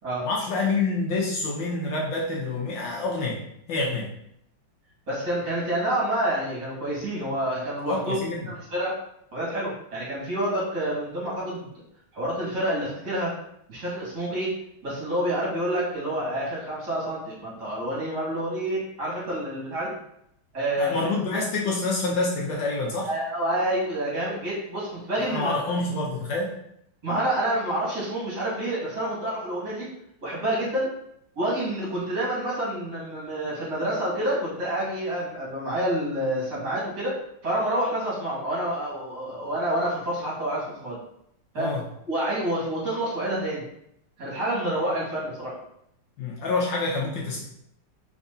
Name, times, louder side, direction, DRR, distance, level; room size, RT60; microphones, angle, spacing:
voice 1, 0.2-3.4 3.7-4.1 7.9-8.4 20.8-23.1 25.3-26.5 41.6-41.8 46.2-47.4, left 3 dB, 70° left, -2 dB, 1.3 m, -27 dB
voice 2, 5.1-9.0 9.3-11.7 12.1-13.3 13.7-14.5 14.8-20.0 20.5-21.1 23.0-25.6 27.0-29.9 30.2-30.9 31.4-37.2 37.4-41.0 41.5-41.7 42.1-43.7 44.2-45.5, right 1 dB, 50° right, -7 dB, 2.4 m, -28 dB
5.1 x 3.4 x 2.7 m, 0.74 s
omnidirectional pair, 2.3 m